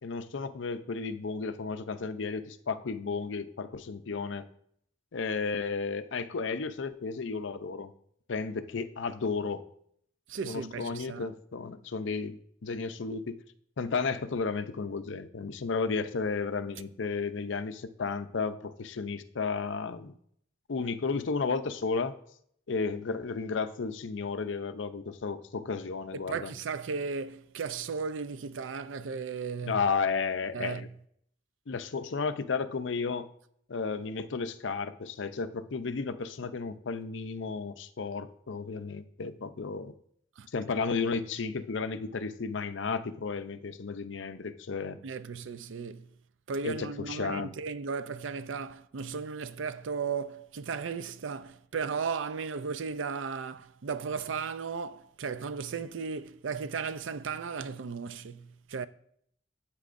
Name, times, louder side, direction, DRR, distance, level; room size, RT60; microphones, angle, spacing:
voice 1, 0.0-4.5 5.1-7.9 8.3-9.6 10.4-13.4 13.8-20.2 20.7-22.1 22.7-26.5 29.7-30.9 31.7-33.3 33.7-39.9 40.5-45.0 46.6-47.5, left 4 dB, 70° left, 0.6 m, -33 dB
voice 2, 10.3-11.3 26.3-29.8 30.5-30.9 40.4-40.5 45.0-46.1 46.5-58.9, right 5 dB, 80° right, 0.5 m, -35 dB
13.0 x 8.4 x 2.6 m
head